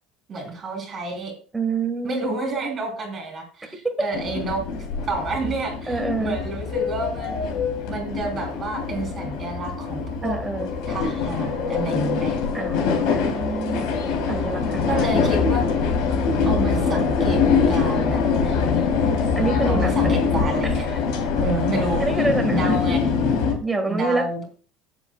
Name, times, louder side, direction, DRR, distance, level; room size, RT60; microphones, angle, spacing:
voice 1, 0.3-1.3 2.0-4.6 5.1-7.5 7.7-10.4 10.8-12.4 14.9-15.6 16.5-17.4 17.7-18.6 19.7-20.9 21.4-22.0 22.5-23.0 23.9-24.4, right 2 dB, 25° right, 3 dB, 3.7 m, -29 dB
voice 2, 1.5-2.3 3.8-4.1 5.9-6.4 10.2-10.7 12.5-13.9 14.3-15.4 19.4-19.9 20.6-20.8 22.0-22.8 23.4-24.3, right 3 dB, 10° right, 4 dB, 1.8 m, -27 dB
sound 1, 4.1-23.5, left 5 dB, 65° left, 3.4 m, -23 dB
17.5 x 7.5 x 2.4 m, 0.39 s
cardioid pair, 165°, 0 cm